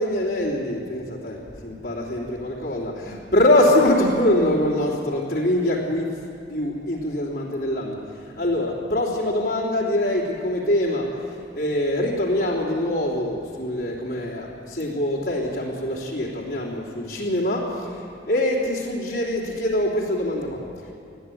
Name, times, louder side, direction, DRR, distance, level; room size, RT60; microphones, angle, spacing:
voice 1, 0.0-6.1 6.5-8.0 8.4-11.2 11.5-20.6, left 1 dB, 60° left, -6 dB, 3.3 m, -24 dB
20.0 x 14.5 x 9.2 m, 2.6 s
head